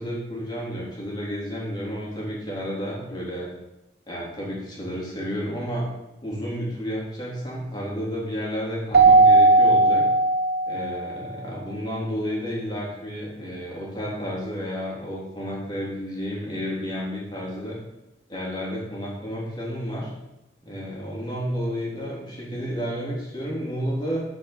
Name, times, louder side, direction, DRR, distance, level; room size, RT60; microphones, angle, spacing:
voice 1, 0.0-3.5 4.1-5.9 6.2-10.0 10.7-17.8 18.3-20.1 20.6-24.2, equal, 25° left, -5 dB, 3.5 m, -31 dB
Keyboard (musical), 8.9-11.2, right 3 dB, 65° right, 1.0 m, -17 dB
8.4 x 5.4 x 7.4 m, 0.92 s
head